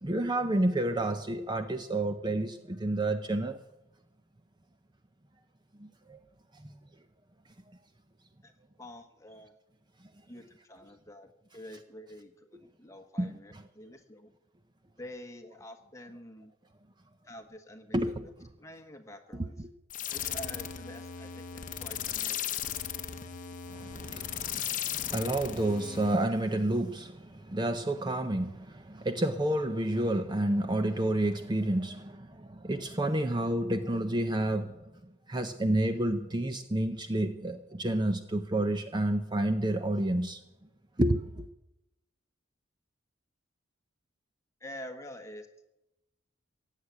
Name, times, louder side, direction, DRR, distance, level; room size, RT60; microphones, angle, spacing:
voice 1, 0.0-3.6 5.8-6.2 6.6-6.7 13.2-13.6 17.9-18.3 23.7-34.8 35.3-40.4 41.0-41.4, right 1 dB, 20° right, 0.6 m, -30 dB
voice 2, 8.8-9.6 10.3-14.3 15.0-16.5 17.2-18.3 18.6-19.7 20.1-22.7 44.6-45.5, left 1 dB, 15° left, 1.3 m, -47 dB
sound 1, 19.9-26.2, left 9 dB, 40° left, 0.8 m, -36 dB
16.5 x 7.5 x 9.6 m
head